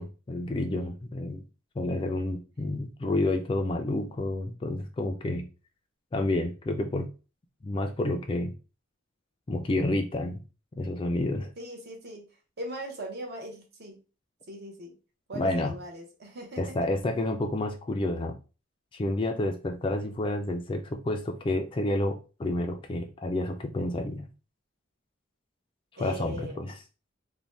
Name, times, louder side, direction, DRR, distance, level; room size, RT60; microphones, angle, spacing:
voice 1, 0.0-1.4 1.8-5.5 6.1-7.1 7.6-8.5 9.5-10.4 10.8-11.5 15.3-15.7 16.6-18.4 18.9-24.3 26.0-26.7, left 1 dB, 25° left, 0.3 m, -29 dB
voice 2, 11.6-12.3 12.6-14.0 14.5-15.0 15.3-16.8 26.0-26.8, right 1 dB, 50° right, 0.7 m, -40 dB
2.6 x 2.1 x 3.1 m
head